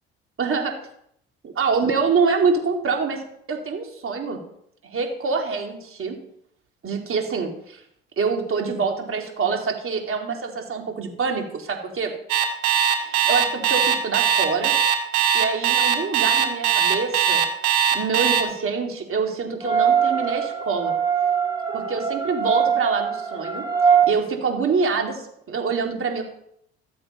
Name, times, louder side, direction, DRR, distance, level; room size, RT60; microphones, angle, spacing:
voice 1, 0.4-0.7 1.6-3.2 3.5-4.4 4.8-6.1 6.8-7.8 8.2-12.1 12.9-14.7 15.3-17.4 17.9-20.9 21.7-26.2, right 5 dB, 45° right, 2 dB, 3.4 m, -25 dB
Alarm, 12.3-18.4, right 8 dB, 75° right, 1.8 m, -19 dB
sound 1, 19.6-24.1, right 7 dB, 15° right, 2.5 m, -22 dB
14.0 x 7.7 x 5.6 m, 0.71 s
hypercardioid pair, 60°, 29 cm